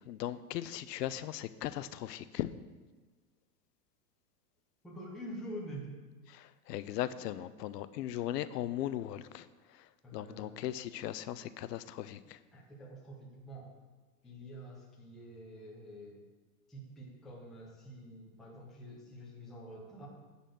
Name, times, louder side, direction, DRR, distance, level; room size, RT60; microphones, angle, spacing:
voice 1, 0.1-2.5 6.3-12.4, left 12 dB, 80° left, 14 dB, 0.7 m, -38 dB
voice 2, 4.8-5.9 10.0-10.6 12.5-13.7 14.2-16.2 16.7-20.1, equal, ahead, -4 dB, 0.4 m, -47 dB
10.0 x 4.2 x 7.6 m, 1.3 s
supercardioid pair, 160°, 48 cm